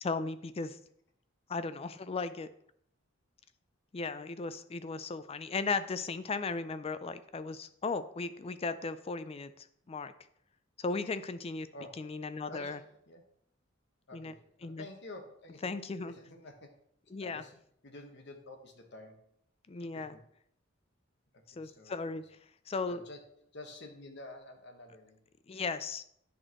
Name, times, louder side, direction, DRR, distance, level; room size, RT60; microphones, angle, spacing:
voice 1, 0.0-0.8 1.5-2.5 3.9-10.1 10.8-11.7 12.0-12.8 14.1-14.3 14.6-14.8 15.6-16.1 17.1-17.4 19.7-20.1 21.6-22.2 22.7-23.0 25.5-26.0, left 4 dB, 30° left, 13 dB, 0.4 m, -36 dB
voice 2, 11.7-12.0 12.4-13.2 14.1-15.7 16.0-16.8 17.2-17.6 17.8-19.3 19.8-20.2 21.3-22.2 22.9-23.2 23.5-25.2, left 2 dB, 60° left, 4 dB, 1.2 m, -50 dB
10.0 x 6.2 x 3.0 m, 0.69 s
head